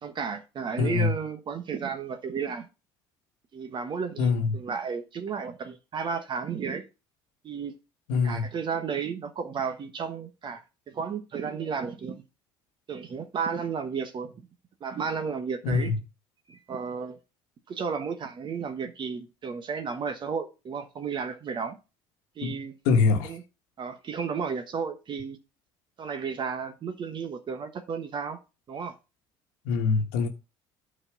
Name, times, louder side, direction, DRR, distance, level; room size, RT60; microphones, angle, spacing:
voice 1, 0.0-2.7 3.5-6.8 7.4-7.7 8.2-10.6 10.9-12.2 12.9-14.4 14.8-15.9 16.5-17.2 17.7-21.8 22.4-22.7 23.2-23.4 23.8-25.4 26.0-28.4 28.7-28.9, right 6 dB, 45° right, 1.3 m, -33 dB
voice 2, 0.8-1.1 4.2-4.6 8.1-8.5 15.6-16.0 22.4-22.6 22.8-23.3 29.6-30.3, left 4 dB, 85° left, 1.4 m, -24 dB
8.7 x 4.3 x 5.9 m
supercardioid pair, 85°, 11 cm